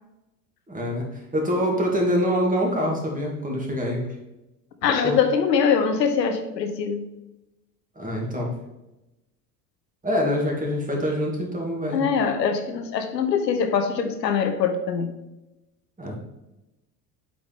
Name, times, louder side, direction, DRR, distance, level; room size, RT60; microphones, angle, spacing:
voice 1, 0.7-1.1 1.3-4.0 5.0-5.2 8.0-8.5 10.0-12.0 16.0-16.2, equal, 15° right, -1 dB, 2.3 m, -25 dB
voice 2, 4.8-7.1 11.9-15.2, left 6 dB, 90° left, 8 dB, 0.8 m, -23 dB
8.0 x 4.9 x 3.6 m, 0.96 s
hypercardioid pair, 70°, 48 cm